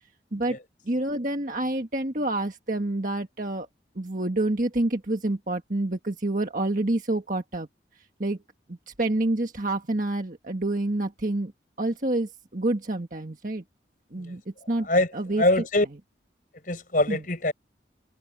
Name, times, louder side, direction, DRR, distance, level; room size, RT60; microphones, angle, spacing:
voice 1, 0.8-3.7 3.9-7.7 8.2-8.4 8.7-11.5 11.8-13.6 14.1-14.4 14.7-14.9 15.1-15.4 17.1-17.2, right 2 dB, 45° right, 1.6 m, -28 dB
voice 2, 14.8-15.9 16.6-17.5, left 2 dB, 45° left, 6.6 m, -24 dB
head